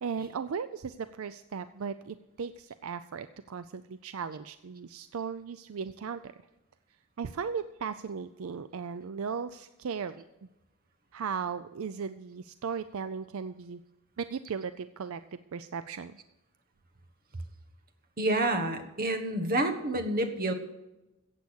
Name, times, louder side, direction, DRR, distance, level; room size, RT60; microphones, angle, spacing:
voice 1, 0.0-6.3 7.2-10.2 11.1-13.8 14.2-16.2, right 6 dB, 70° right, 12 dB, 0.4 m, -37 dB
voice 2, 18.2-20.5, right 1 dB, 40° right, 6 dB, 1.3 m, -28 dB
14.5 x 8.3 x 6.3 m, 0.98 s
head